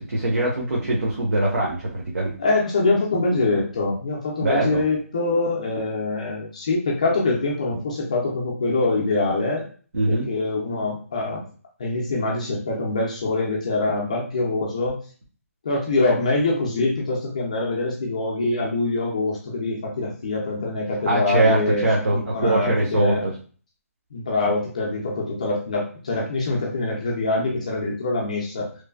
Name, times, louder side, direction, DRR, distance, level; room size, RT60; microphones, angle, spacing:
voice 1, 0.0-2.3 4.4-4.8 9.9-10.3 21.1-23.3, right 2 dB, 75° right, -3 dB, 0.9 m, -22 dB
voice 2, 2.4-9.7 10.1-11.4 11.8-15.0 15.6-21.9 22.1-23.3 24.1-28.7, left 2 dB, 25° left, -2 dB, 0.4 m, -24 dB
3.1 x 2.1 x 2.3 m, 0.40 s
hypercardioid pair, 175°, 8 cm